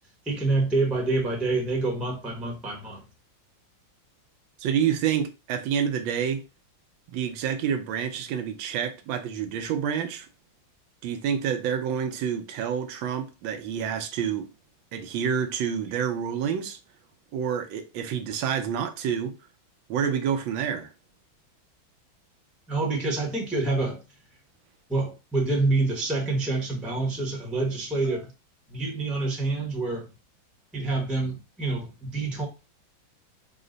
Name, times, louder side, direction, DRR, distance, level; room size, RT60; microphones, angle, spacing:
voice 1, 0.2-3.0 22.7-24.0 24.9-28.3 28.7-30.1 30.7-32.5, right 3 dB, ahead, 0.6 m, -27 dB
voice 2, 4.6-6.4 7.1-10.3 11.0-14.5 14.9-16.8 17.3-19.4 19.9-20.9, right 8 dB, 80° right, 1.4 m, -28 dB
4.7 x 2.1 x 3.8 m
omnidirectional pair, 2.1 m